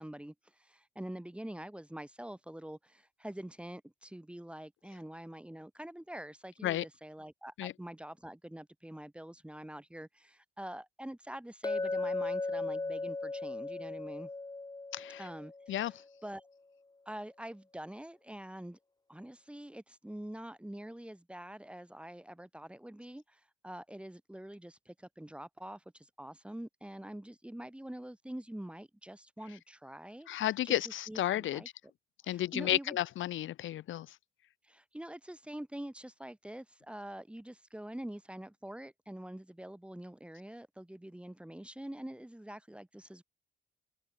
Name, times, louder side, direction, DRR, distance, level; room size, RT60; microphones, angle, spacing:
voice 1, 0.0-14.3 15.2-15.9 16.2-16.4 17.0-18.8 19.1-30.7 31.1-31.7 32.2-33.0 34.6-43.2, right 1 dB, 5° right, 3.2 m, -45 dB
Chink clink, 11.6-15.8, left 3 dB, 20° left, 4.2 m, -37 dB
voice 2, 30.3-31.6 32.3-34.1, left 13 dB, 75° left, 2.0 m, -32 dB
open air
cardioid pair, 90°, 20 cm